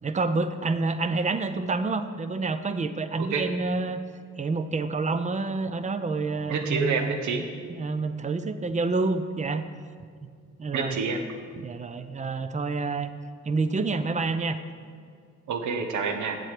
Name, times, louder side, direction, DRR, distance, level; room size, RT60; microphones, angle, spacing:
voice 1, 0.0-4.0 4.4-7.1 7.7-9.6 10.2-10.3 10.6-11.0 11.6-13.1 13.4-14.6, right 3 dB, 25° right, 11 dB, 0.5 m, -28 dB
voice 2, 6.5-7.4 10.7-11.2 15.5-16.4, right 5 dB, 70° right, 6 dB, 1.1 m, -28 dB
7.7 x 7.5 x 4.9 m, 2.1 s
cardioid pair, 90°, 30 cm